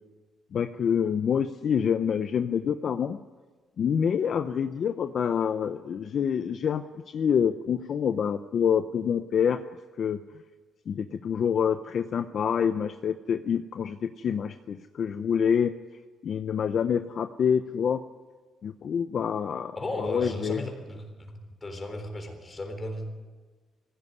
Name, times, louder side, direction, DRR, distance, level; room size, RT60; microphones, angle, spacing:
voice 1, 0.5-3.2 3.8-9.6 10.0-10.2 10.9-15.7 16.2-18.0 18.6-20.6, left 7 dB, 50° left, 9 dB, 0.7 m, -27 dB
voice 2, 19.8-23.1, left 1 dB, 25° left, 5 dB, 3.7 m, -35 dB
20.0 x 16.0 x 9.8 m, 1.3 s
cardioid pair, 135°, 0 cm